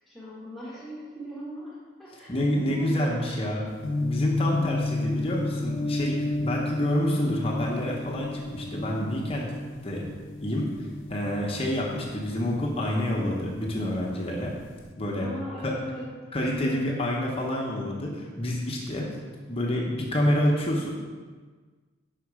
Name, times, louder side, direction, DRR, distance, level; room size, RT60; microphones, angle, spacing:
voice 1, 0.0-3.0 4.5-5.1 11.6-11.9 15.2-16.0 16.5-16.9, equal, ahead, -8 dB, 1.3 m, -40 dB
voice 2, 2.3-3.6 4.0-9.5 9.8-10.0 10.4-10.7 11.1-14.5 15.0-15.3 15.6-15.7 16.3-19.1 19.5-20.9, left 1 dB, 30° left, -2 dB, 0.8 m, -28 dB
sound 1, 3.7-13.7 14.0-14.8, left 2 dB, 85° left, 0.6 m, -32 dB
5.8 x 4.1 x 4.8 m, 1.4 s
head